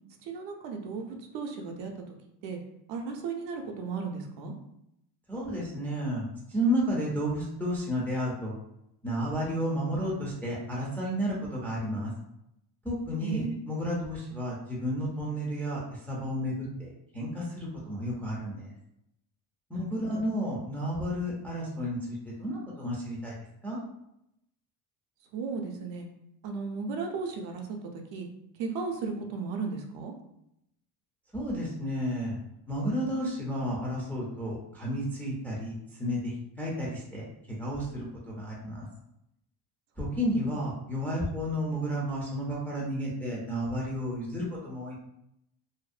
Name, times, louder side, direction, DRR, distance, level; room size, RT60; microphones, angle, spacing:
voice 1, 0.2-2.0 2.4-2.6 2.9-4.5 13.2-13.6 20.0-20.2 25.3-26.1 26.4-28.3 28.6-30.1 40.1-40.2, right 4 dB, 70° right, 3 dB, 0.6 m, -35 dB
voice 2, 5.3-8.5 9.0-12.1 12.8-18.7 19.7-22.0 22.2-23.3 23.6-23.8 31.3-32.4 32.7-38.9 40.0-45.0, equal, 5° left, -5 dB, 0.3 m, -32 dB
2.6 x 2.0 x 2.4 m, 0.81 s
cardioid pair, 135°, 46 cm